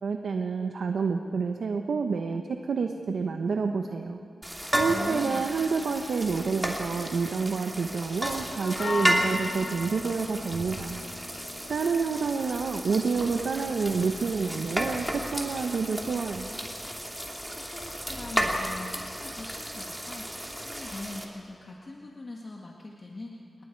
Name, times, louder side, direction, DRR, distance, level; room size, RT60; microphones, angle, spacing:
voice 1, 0.0-4.2 4.8-11.0 11.7-16.5, right 5 dB, 85° right, 5 dB, 0.9 m, -28 dB
sound 1, 4.4-21.2, equal, 5° right, 2.8 m, -33 dB
voice 2, 4.9-5.5 17.5-23.6, left 2 dB, 45° left, -1 dB, 1.8 m, -42 dB
Church bell, 7.7-21.5, left 3 dB, 70° left, 5.1 m, -43 dB
Scratching (performance technique), 8.9-11.2 12.1-16.4, right 2 dB, 35° right, 7.2 m, -54 dB
28.0 x 20.5 x 4.6 m, 2.4 s
cardioid pair, 75°, 0 cm